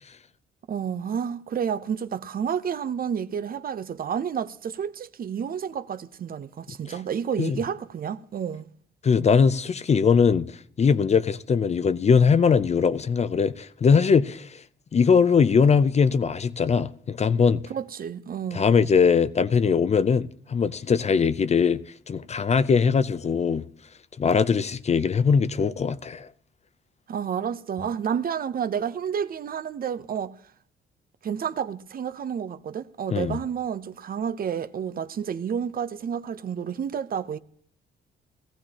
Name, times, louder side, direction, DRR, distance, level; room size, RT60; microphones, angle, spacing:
voice 1, 0.7-8.7 17.7-18.6 27.1-30.3 31.2-37.4, right 8 dB, 45° right, 0.7 m, -30 dB
voice 2, 9.0-14.6 14.9-17.6 18.5-21.8 22.1-23.6 24.2-26.3 33.1-33.4, left 6 dB, 35° left, 0.5 m, -21 dB
18.0 x 14.5 x 2.9 m
cardioid pair, 90°, 20 cm